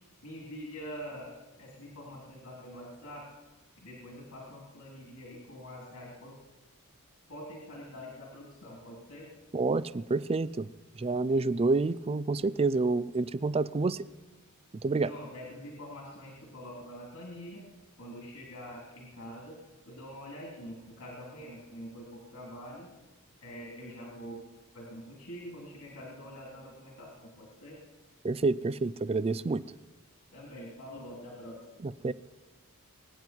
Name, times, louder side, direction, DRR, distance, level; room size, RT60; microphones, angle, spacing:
voice 1, 0.2-3.2 3.8-6.3 7.3-9.3 15.0-17.6 18.0-19.6 19.8-22.9 23.4-24.4 24.7-27.8 30.3-31.7, equal, 70° left, -2 dB, 3.4 m, -45 dB
voice 2, 9.5-10.7 11.0-14.1 14.8-15.1 28.2-29.6 31.8-32.1, right 3 dB, 25° right, 18 dB, 0.4 m, -28 dB
23.5 x 9.5 x 4.5 m, 1.1 s
head